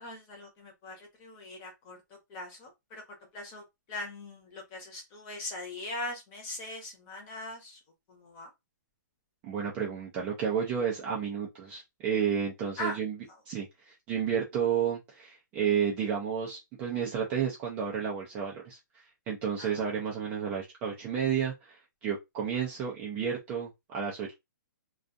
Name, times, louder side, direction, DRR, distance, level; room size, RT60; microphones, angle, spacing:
voice 1, 0.0-7.8 8.1-8.5 12.8-13.0 19.6-19.7, left 1 dB, 20° left, 0.8 m, -41 dB
voice 2, 9.4-13.2 13.5-18.8 19.3-24.3, right 7 dB, 15° right, 0.4 m, -31 dB
2.4 x 2.3 x 2.5 m
hypercardioid pair, 170°, 11 cm